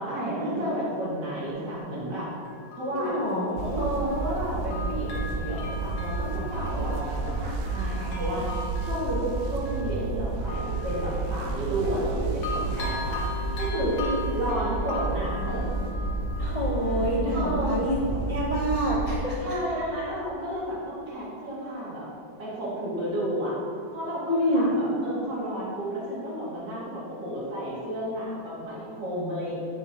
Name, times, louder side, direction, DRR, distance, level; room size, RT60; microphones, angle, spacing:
voice 1, 0.0-2.3 2.7-3.2 3.8-8.5 8.8-13.2 13.6-14.0 14.3-15.6 17.3-17.8 19.4-22.1 22.4-23.6 23.9-29.5, right 1 dB, 60° right, -7 dB, 2.5 m, -32 dB
Bell, 1.5-1.6 2.5-4.4 4.7-12.1 12.4-17.0 17.5-17.6, left 2 dB, 90° left, 1.8 m, -40 dB
voice 2, 2.9-3.8 14.0-14.2 16.4-18.0 18.3-19.4 20.0-20.1 24.3-24.7, equal, 65° left, -5 dB, 0.3 m, -27 dB
sound 1, 3.6-19.2, right 3 dB, 85° right, 1.4 m, -31 dB
sound 2, 10.5-20.3, left 1 dB, 35° right, 1.7 m, -42 dB
8.9 x 6.1 x 2.8 m, 2.4 s
omnidirectional pair, 2.1 m